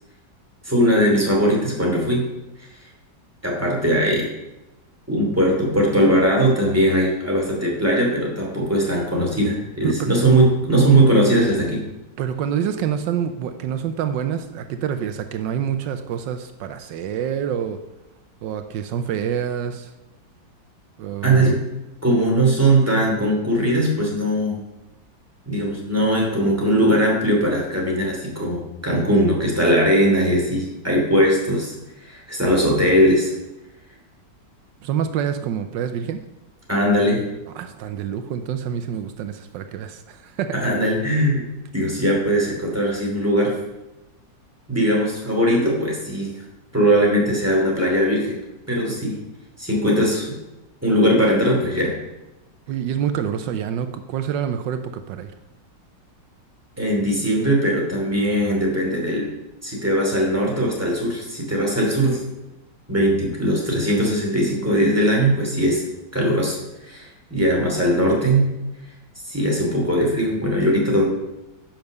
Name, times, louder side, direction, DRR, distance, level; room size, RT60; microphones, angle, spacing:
voice 1, 0.6-2.2 2.6-2.7 3.4-4.3 5.1-11.8 21.2-21.6 22.0-24.6 25.5-33.3 36.7-37.2 40.5-41.4 41.7-43.6 44.7-46.3 46.7-48.4 48.7-49.2 49.6-50.3 50.8-51.9 56.8-59.3 59.6-62.2 62.9-65.8 66.1-66.6 66.8-68.4 69.3-71.0, right 1 dB, 10° right, -3 dB, 2.8 m, -20 dB
voice 2, 12.2-17.8 18.4-19.9 21.0-21.6 34.8-36.2 37.5-40.5 52.7-55.3, right 8 dB, 85° right, 9 dB, 1.3 m, -27 dB
10.5 x 6.0 x 6.6 m, 0.99 s
omnidirectional pair, 1.9 m